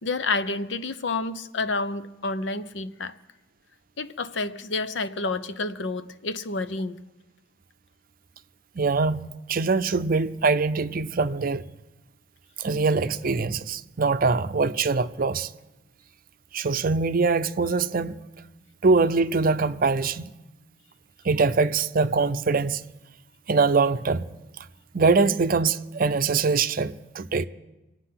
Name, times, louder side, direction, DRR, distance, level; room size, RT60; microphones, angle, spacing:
voice 1, 0.0-3.1 4.0-7.0, left 3 dB, 70° left, 0.8 m, -29 dB
voice 2, 8.8-11.7 12.6-15.5 16.5-18.2 18.8-20.3 21.2-22.8 23.5-24.2 24.9-27.5, right 4 dB, 50° right, 0.6 m, -23 dB
26.0 x 9.0 x 5.8 m
head